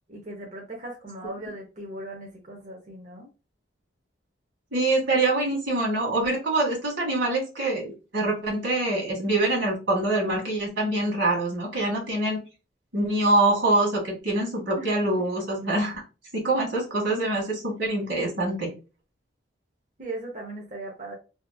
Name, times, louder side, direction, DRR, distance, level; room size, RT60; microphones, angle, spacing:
voice 1, 0.1-3.3 14.8-14.9 20.0-21.1, right 2 dB, 40° right, -1 dB, 0.6 m, -38 dB
voice 2, 4.7-12.4 12.9-16.0 16.3-18.7, right 2 dB, 75° right, -1 dB, 1.3 m, -25 dB
2.7 x 2.4 x 2.2 m, 0.32 s
head